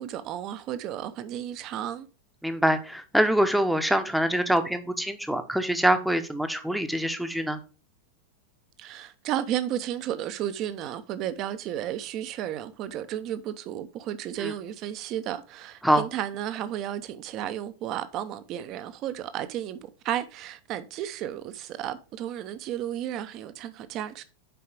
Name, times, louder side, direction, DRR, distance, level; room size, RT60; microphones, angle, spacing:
voice 1, 0.0-2.1 8.8-24.2, right 11 dB, 35° right, 0.7 m, -33 dB
voice 2, 2.4-7.6 14.4-14.5 15.8-16.0, equal, ahead, 0.9 m, -24 dB
6.9 x 4.7 x 4.8 m
figure-of-eight pair, 90°, 0 cm